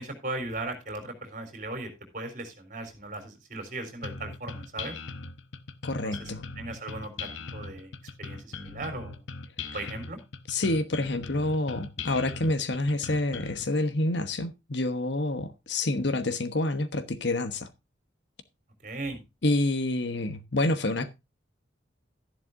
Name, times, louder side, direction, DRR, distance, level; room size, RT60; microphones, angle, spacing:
voice 1, 0.0-5.0 5.9-7.9 8.2-9.2 9.7-10.2 18.8-19.2, right 2 dB, 45° right, 3.7 m, -38 dB
sound 1, 4.0-13.6, left 4 dB, 85° left, 1.1 m, -40 dB
voice 2, 5.8-6.4 10.5-17.7 19.4-21.1, left 2 dB, 65° left, 1.2 m, -28 dB
13.0 x 11.0 x 2.6 m
head